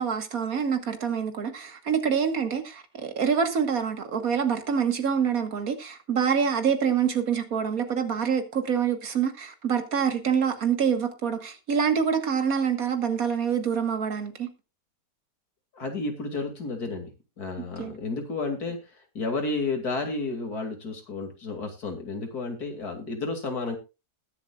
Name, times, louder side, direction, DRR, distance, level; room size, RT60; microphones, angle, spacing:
voice 1, 0.0-14.5 17.8-17.9, right 7 dB, 65° right, 2.0 m, -26 dB
voice 2, 15.7-23.8, left 3 dB, 80° left, 3.0 m, -32 dB
20.5 x 7.3 x 2.4 m
omnidirectional pair, 1.6 m